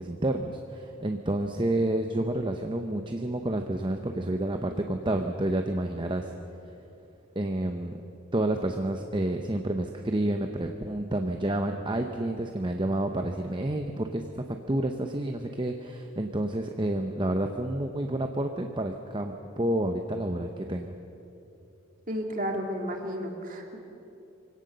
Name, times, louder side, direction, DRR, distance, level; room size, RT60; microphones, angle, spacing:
voice 1, 0.0-6.3 7.4-8.0 8.3-20.9, right 1 dB, 20° right, 5 dB, 0.7 m, -29 dB
voice 2, 22.1-23.8, equal, 40° right, 3 dB, 2.3 m, -32 dB
24.0 x 17.0 x 6.7 m, 2.9 s
head